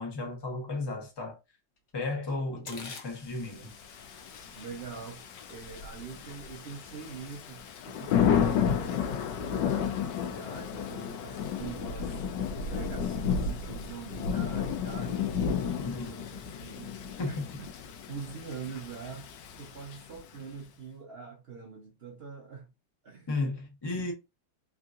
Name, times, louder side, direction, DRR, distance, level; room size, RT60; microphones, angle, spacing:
voice 1, 0.0-1.4 1.9-3.8 15.8-16.2 17.2-17.3 23.3-24.1, left 2 dB, 25° left, 0.5 m, -34 dB
sound 1, 1.8-1.9 2.3-7.4, left 4 dB, 55° left, 0.8 m, -50 dB
Thunder / Rain, 3.8-20.4, left 7 dB, 75° left, 1.2 m, -32 dB
voice 2, 4.6-12.2 12.7-17.0 17.2-17.7 18.1-19.3 19.6-22.7 23.0-23.3, right 6 dB, 65° right, 0.6 m, -44 dB
3.6 x 2.6 x 2.4 m
omnidirectional pair, 2.0 m